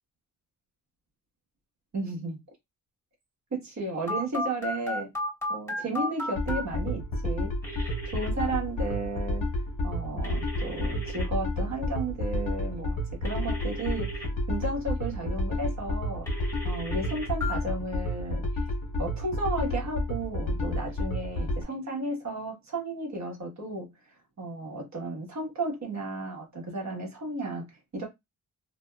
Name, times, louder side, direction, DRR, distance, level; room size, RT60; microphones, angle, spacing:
voice 1, 1.9-2.4 3.5-5.1 5.5-9.5 9.8-16.3 16.6-18.5 19.0-23.9 24.4-28.1, right 2 dB, 50° right, 1.4 m, -34 dB
Telephone, 4.1-6.6 7.6-8.3 10.2-11.2 13.2-14.3 16.3-17.5, left 1 dB, 10° left, 2.1 m, -34 dB
sound 1, 6.4-21.6, left 1 dB, 70° left, 1.3 m, -31 dB
2.9 x 2.7 x 2.3 m
wide cardioid pair, 110°, 35 cm